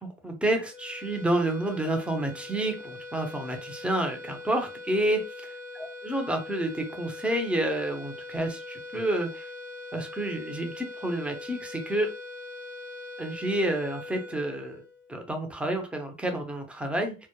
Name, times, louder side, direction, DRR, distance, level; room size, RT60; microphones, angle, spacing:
voice 1, 0.2-9.5 9.9-12.1 13.2-14.8 15.1-17.2, right 1 dB, 5° right, 3 dB, 0.6 m, -29 dB
sound 1, 0.7-15.3, left 2 dB, 30° left, 0.7 m, -42 dB
2.2 x 2.0 x 2.9 m, 0.31 s
cardioid pair, 90°, 30 cm